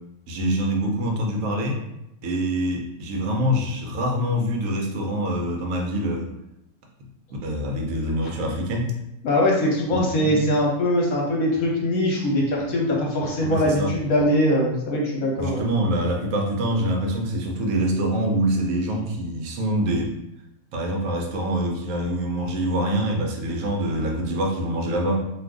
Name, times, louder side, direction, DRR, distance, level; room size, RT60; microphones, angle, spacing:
voice 1, 0.3-1.8 2.2-6.3 7.4-8.9 9.9-10.4 13.4-14.0 15.4-20.1 20.7-25.2, equal, 70° right, 1 dB, 1.0 m, -25 dB
voice 2, 9.2-15.7, left 1 dB, 75° left, -1 dB, 1.2 m, -22 dB
2.6 x 2.4 x 3.4 m, 0.85 s
omnidirectional pair, 1.5 m